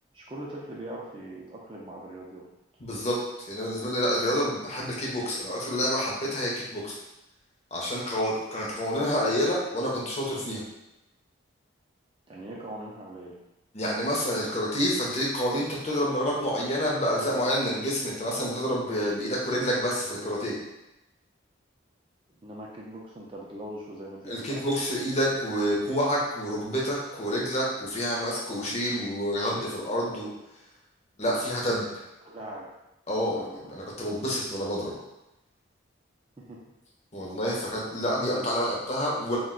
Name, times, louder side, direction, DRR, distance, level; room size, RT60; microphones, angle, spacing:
voice 1, 0.1-2.4 12.3-13.3 22.4-24.6 32.2-32.7 33.3-33.6 36.4-36.6, right 1 dB, 25° right, -3 dB, 0.3 m, -41 dB
voice 2, 2.8-3.2 3.5-7.0 7.7-10.6 13.7-20.5 24.3-30.3 31.2-32.0 33.1-34.9 37.1-39.4, equal, 35° left, -4 dB, 0.6 m, -28 dB
2.3 x 2.2 x 3.6 m, 0.94 s
head